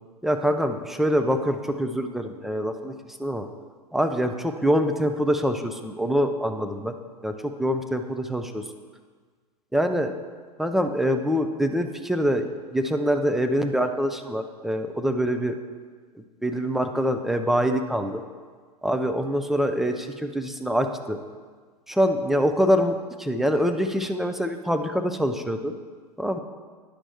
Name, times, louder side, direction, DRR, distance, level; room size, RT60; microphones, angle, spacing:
voice 1, 0.2-2.9 3.2-3.5 3.9-6.9 7.2-8.6 9.7-10.1 10.6-15.5 16.4-18.2 18.8-21.2 21.9-25.8 26.2-26.4, equal, ahead, 6 dB, 0.4 m, -25 dB
10.0 x 6.1 x 3.4 m, 1.5 s
hypercardioid pair, 100°, 20 cm